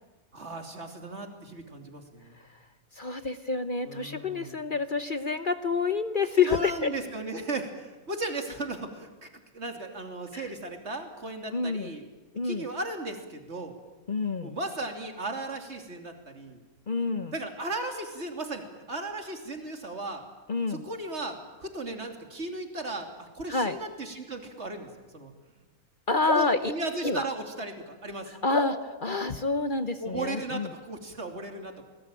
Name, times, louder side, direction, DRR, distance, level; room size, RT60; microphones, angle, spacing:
voice 1, 0.3-2.3 3.8-4.6 6.5-9.3 9.5-12.0 12.4-13.7 14.4-16.6 17.3-20.2 20.7-25.3 26.3-28.3 30.0-31.7, right 2 dB, 50° right, 4 dB, 3.3 m, -36 dB
voice 2, 2.9-6.9 10.3-10.5 11.5-11.9 12.3-12.6 14.1-14.6 16.9-17.3 20.5-20.8 23.5-23.8 26.1-26.7 27.0-27.2 28.4-30.7, left 4 dB, 40° left, 10 dB, 1.0 m, -28 dB
sound 1, 26.3-27.9 28.5-30.2, left 2 dB, 20° left, 2.6 m, -37 dB
28.0 x 20.0 x 9.0 m, 1.2 s
omnidirectional pair, 1.5 m